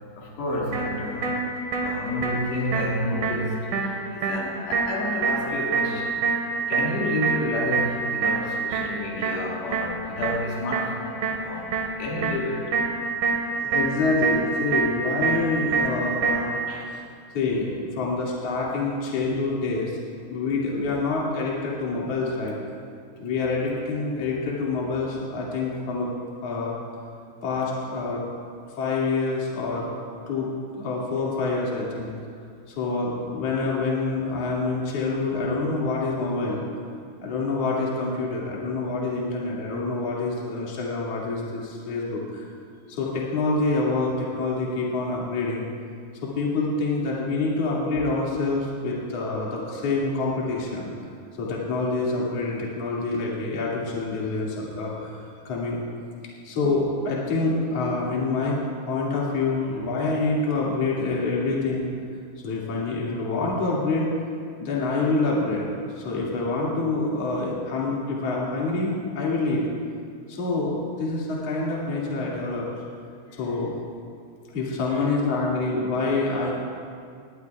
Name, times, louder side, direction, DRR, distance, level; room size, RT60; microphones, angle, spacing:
voice 1, 0.2-6.2 6.7-11.7 12.0-12.8 16.7-16.9 73.3-73.6 74.9-75.4, left 1 dB, 85° left, -4 dB, 4.3 m, -30 dB
sound 1, 0.7-16.7, right 4 dB, 70° right, 3.2 m, -27 dB
voice 2, 13.6-16.5 17.3-20.0 20.3-22.6 23.2-26.1 26.4-26.8 27.4-28.2 28.8-29.9 30.3-32.1 32.7-36.7 37.2-42.4 42.9-45.6 46.2-50.9 51.4-55.2 55.4-55.8 56.4-58.6 58.9-61.9 62.4-64.1 64.6-65.7 66.0-69.6 70.3-72.7 73.3-73.7 74.5-76.5, left 3 dB, 45° left, -5 dB, 3.0 m, -26 dB
19.5 x 18.5 x 2.4 m, 2.3 s
omnidirectional pair, 4.8 m